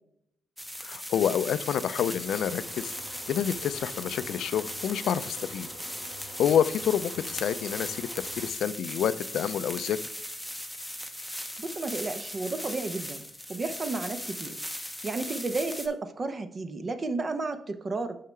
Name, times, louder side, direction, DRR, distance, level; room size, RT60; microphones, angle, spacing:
sound 1, 0.6-15.9, equal, ahead, 0.8 m, -38 dB
voice 1, 0.8-2.9 3.3-5.7 6.4-10.0, left 9 dB, 70° left, 14 dB, 0.4 m, -28 dB
sound 2, 2.2-8.5, right 2 dB, 50° right, 1.1 m, -48 dB
voice 2, 11.6-13.2 13.5-14.6 15.0-18.2, right 3 dB, 35° right, 9 dB, 0.7 m, -32 dB
6.5 x 5.7 x 3.2 m, 0.76 s
cardioid pair, 90°, 0 cm